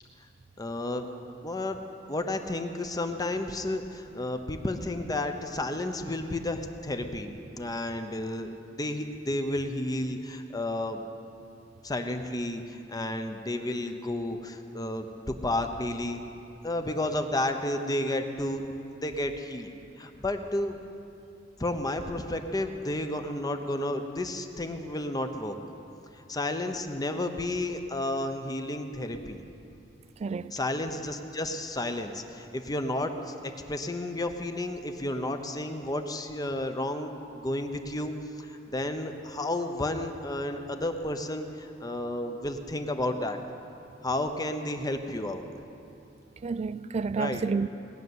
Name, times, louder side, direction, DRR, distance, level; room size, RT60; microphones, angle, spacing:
voice 1, 0.6-1.1 1.4-1.8 2.1-11.0 11.8-16.2 16.6-19.7 20.0-20.8 21.6-25.6 26.3-29.4 30.5-33.3 33.7-43.4 44.0-45.5 47.2-47.4, left 1 dB, 20° left, 0.8 m, -32 dB
voice 2, 30.2-30.6 46.4-47.7, right 4 dB, 35° right, 0.3 m, -30 dB
19.0 x 6.7 x 9.4 m
head